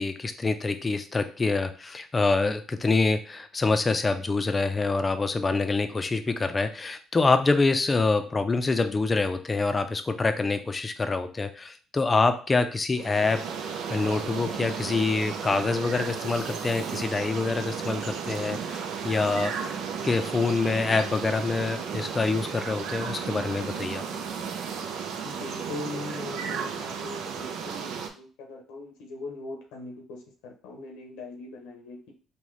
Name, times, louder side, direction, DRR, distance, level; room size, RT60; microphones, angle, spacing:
voice 1, 0.0-19.7 20.0-24.0, left 3 dB, 25° left, 8 dB, 0.5 m, -26 dB
sound 1, 13.0-28.1, right 6 dB, 75° right, 0.5 m, -34 dB
voice 2, 25.2-32.1, left 2 dB, 85° left, 2 dB, 0.7 m, -40 dB
3.8 x 2.2 x 3.1 m, 0.38 s
supercardioid pair, 80°, 0 cm